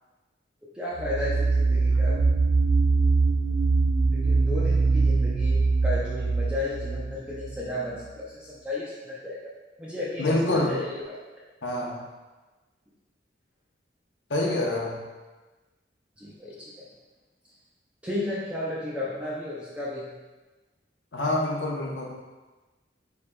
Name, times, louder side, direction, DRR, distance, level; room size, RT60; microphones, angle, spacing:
voice 1, 0.7-2.2 4.1-9.4 9.8-11.2 16.2-16.9 18.0-20.1, left 1 dB, 5° right, -7 dB, 0.5 m, -33 dB
sound 1, 1.0-7.6, right 3 dB, 90° right, 0.4 m, -23 dB
voice 2, 10.2-10.8 11.6-12.0 14.3-15.0 21.1-22.1, left 1 dB, 75° left, -1 dB, 0.8 m, -26 dB
4.6 x 4.5 x 2.2 m, 1.2 s
head